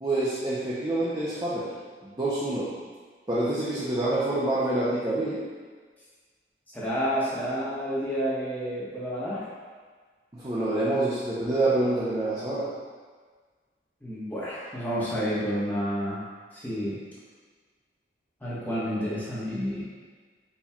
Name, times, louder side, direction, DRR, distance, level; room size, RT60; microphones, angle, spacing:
voice 1, 0.0-1.7 2.0-2.7 3.3-5.4 10.3-12.7, right 2 dB, 25° right, -8 dB, 0.5 m, -27 dB
voice 2, 6.7-9.4 14.0-16.2 16.5-17.0 18.4-19.8, equal, 10° left, -10 dB, 0.9 m, -30 dB
4.3 x 2.3 x 3.5 m, 1.5 s
head